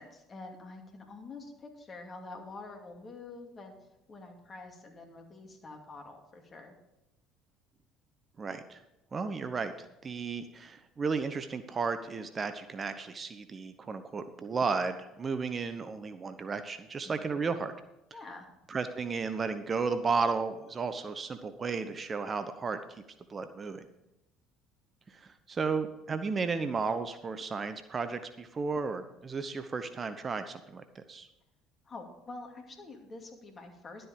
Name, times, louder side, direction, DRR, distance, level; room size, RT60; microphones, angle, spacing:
voice 1, 0.0-3.8 4.1-6.8 17.0-17.4 18.1-18.5 31.8-34.1, left 3 dB, 35° left, 3 dB, 2.4 m, -47 dB
voice 2, 8.4-8.8 9.1-9.7 10.0-17.7 18.7-22.8 23.3-23.9 25.1-31.3, right 4 dB, 30° right, 10 dB, 0.8 m, -33 dB
12.0 x 7.8 x 5.2 m, 0.91 s
figure-of-eight pair, 60°, 0 cm